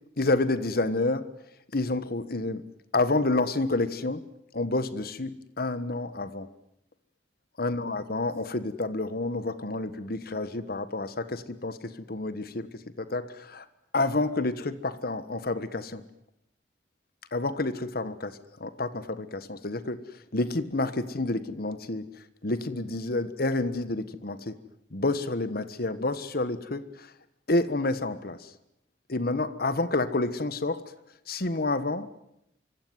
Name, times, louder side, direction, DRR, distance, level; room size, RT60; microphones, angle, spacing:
voice 1, 0.2-1.3 1.7-2.6 2.9-4.2 4.5-6.5 7.6-12.7 13.0-13.6 13.9-16.0 17.3-20.0 20.3-22.0 22.4-24.6 24.9-27.1 27.5-28.5 29.1-30.8 31.3-32.1, left 2 dB, 55° left, 14 dB, 1.4 m, -29 dB
26.0 x 24.5 x 9.4 m, 0.77 s
head